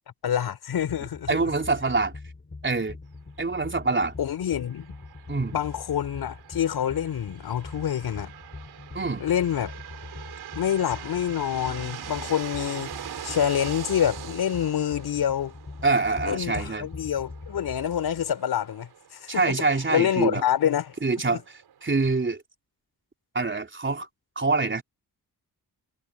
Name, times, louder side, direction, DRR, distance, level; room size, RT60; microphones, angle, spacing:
voice 1, 0.2-1.5 4.2-4.9 5.5-8.3 9.2-9.7 10.5-13.0 13.2-15.5 16.2-21.0 21.3-21.4, left 9 dB, 85° left, 4.7 m, -27 dB
sound 1, 0.7-18.3, left 3 dB, 30° left, 5.4 m, -43 dB
voice 2, 1.3-2.2 2.6-3.0 3.4-4.2 5.3-5.6 8.9-9.3 15.8-16.9 19.3-20.4 21.0-21.4 21.8-22.4 23.3-24.1 24.4-24.8, right 3 dB, 30° right, 3.9 m, -25 dB
sound 2, 4.6-22.2, right 10 dB, 85° right, 4.2 m, -43 dB
cardioid pair, 70°, 37 cm